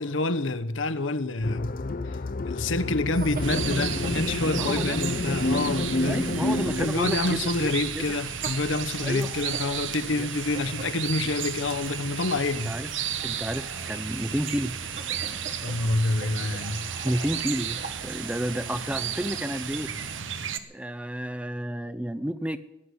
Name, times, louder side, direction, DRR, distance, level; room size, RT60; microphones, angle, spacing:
voice 1, 0.0-1.8 2.0-2.2 2.4-6.2 6.8-12.7 15.6-16.9, left 2 dB, 85° left, 1.0 m, -27 dB
sound 1, 1.4-6.9, left 2 dB, 45° left, 0.6 m, -29 dB
sound 2, 3.1-20.2, right 3 dB, 45° right, 1.3 m, -38 dB
sound 3, 3.4-20.6, right 9 dB, 75° right, 1.0 m, -34 dB
voice 2, 4.5-5.0 6.0-8.0 9.0-9.3 10.1-10.3 12.7-12.9 13.2-14.8 17.0-19.9 20.7-22.6, right 1 dB, 5° right, 0.6 m, -31 dB
16.5 x 9.9 x 8.0 m
head